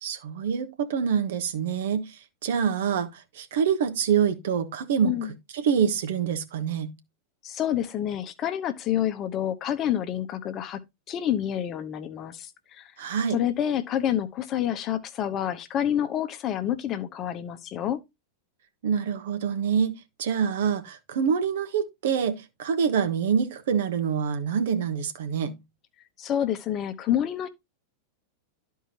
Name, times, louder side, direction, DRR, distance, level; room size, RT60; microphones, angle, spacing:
voice 1, 0.0-2.1 2.4-5.1 5.5-6.9 13.0-13.4 18.8-19.9 20.2-25.6, right 7 dB, 55° right, 1.3 m, -26 dB
voice 2, 5.0-5.3 7.4-10.8 11.1-12.9 13.3-18.0 26.2-27.5, left 10 dB, 30° left, 0.9 m, -28 dB
12.5 x 4.6 x 2.9 m
figure-of-eight pair, 90°, 0 cm